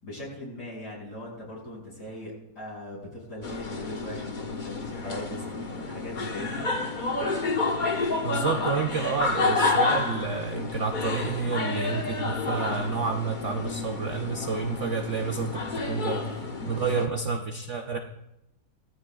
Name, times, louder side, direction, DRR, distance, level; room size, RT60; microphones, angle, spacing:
voice 1, 0.0-6.6 16.6-17.1, left 1 dB, 55° left, -5 dB, 6.9 m, -39 dB
sound 1, 3.4-17.1, left 3 dB, 30° left, 1.0 m, -30 dB
voice 2, 8.2-16.3 16.7-18.0, right 5 dB, 60° right, 4 dB, 0.8 m, -29 dB
19.0 x 14.0 x 2.4 m, 0.88 s
omnidirectional pair, 2.1 m